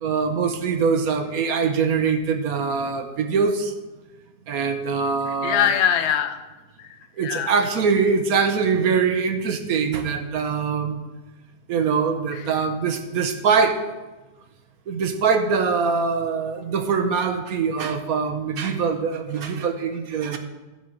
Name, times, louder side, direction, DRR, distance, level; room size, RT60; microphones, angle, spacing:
voice 1, 0.0-3.7 4.5-5.7 7.2-11.0 11.7-13.8 14.9-20.4, right 5 dB, 65° right, 7 dB, 1.2 m, -23 dB
voice 2, 5.3-6.4 6.8-7.5 12.3-12.5, left 9 dB, 55° left, 8 dB, 0.8 m, -23 dB
12.0 x 4.3 x 7.6 m, 1.2 s
omnidirectional pair, 1.8 m